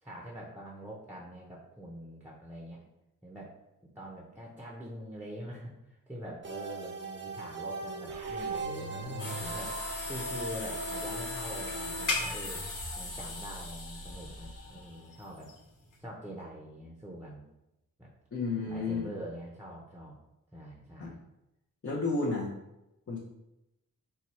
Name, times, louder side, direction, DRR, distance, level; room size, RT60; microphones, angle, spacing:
voice 1, 0.0-2.8 3.2-3.5 4.0-5.7 6.1-9.8 10.1-12.6 13.0-15.5 16.0-17.4 18.0-18.1 18.6-20.2 20.5-21.2, right 1 dB, 5° right, -3 dB, 0.7 m, -44 dB
sound 1, 6.4-12.1, right 2 dB, 35° right, 0.7 m, -39 dB
sound 2, 8.1-14.1, right 1 dB, 85° right, 0.7 m, -46 dB
sound 3, 9.2-16.0, left 2 dB, 65° left, 1.3 m, -38 dB
voice 2, 18.3-19.1 21.0-21.2 21.8-22.5 23.1-23.2, left 3 dB, 40° left, -5 dB, 0.7 m, -32 dB
4.6 x 2.2 x 4.2 m, 0.90 s
wide cardioid pair, 95°, 34 cm